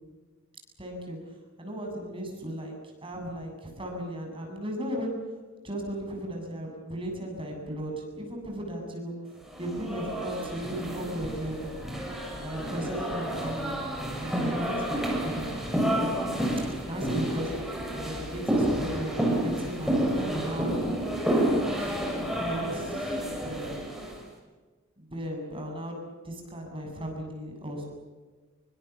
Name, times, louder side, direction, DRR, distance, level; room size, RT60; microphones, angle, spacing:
voice 1, 0.8-1.2 1.6-2.7 3.0-5.2 5.6-9.1 9.6-11.8 12.3-13.9 14.2-15.5 16.8-20.8 21.3-22.0 22.4-23.9 25.0-27.8, equal, 25° right, 1 dB, 7.7 m, -36 dB
sound 1, 9.5-24.2, right 1 dB, ahead, 6.5 m, -30 dB
27.5 x 25.0 x 7.1 m, 1.3 s
head